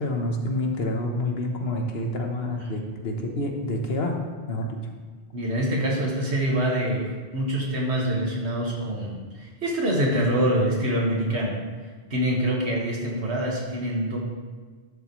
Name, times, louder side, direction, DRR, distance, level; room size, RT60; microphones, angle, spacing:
voice 1, 0.0-4.2 4.5-4.8, left 1 dB, 60° left, 2 dB, 1.3 m, -28 dB
voice 2, 5.3-11.6 12.1-14.2, right 1 dB, 70° right, -2 dB, 2.0 m, -25 dB
12.0 x 7.4 x 3.1 m, 1.5 s
omnidirectional pair, 1.2 m